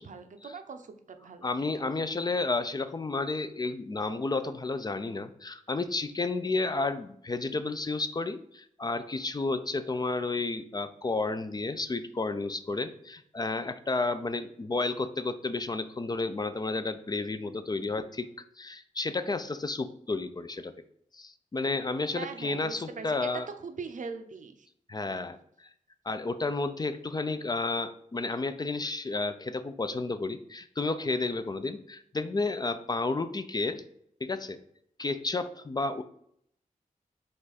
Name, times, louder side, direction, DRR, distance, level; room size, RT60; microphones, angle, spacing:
voice 1, 0.0-1.7 22.1-24.7, right 5 dB, 65° right, 8 dB, 0.5 m, -41 dB
voice 2, 1.4-18.3 18.6-20.7 21.1-23.5 24.9-25.7 26.0-33.8 34.2-34.6 35.0-36.0, left 3 dB, 30° left, 11 dB, 0.4 m, -31 dB
4.8 x 2.4 x 4.1 m, 0.70 s
cardioid pair, 60°, 14 cm